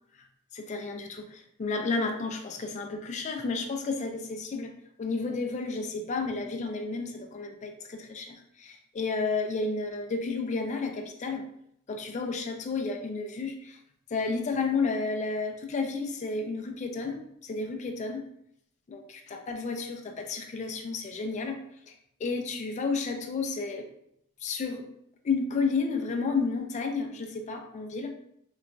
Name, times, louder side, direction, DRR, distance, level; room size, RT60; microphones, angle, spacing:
voice 1, 0.5-4.7 5.0-11.4 11.9-13.8 14.1-18.2 18.9-21.6 21.9-22.0 22.2-23.9 24.4-24.9 25.2-28.1, left 4 dB, 35° left, 4 dB, 0.3 m, -31 dB
2.9 x 2.2 x 2.5 m, 0.73 s
head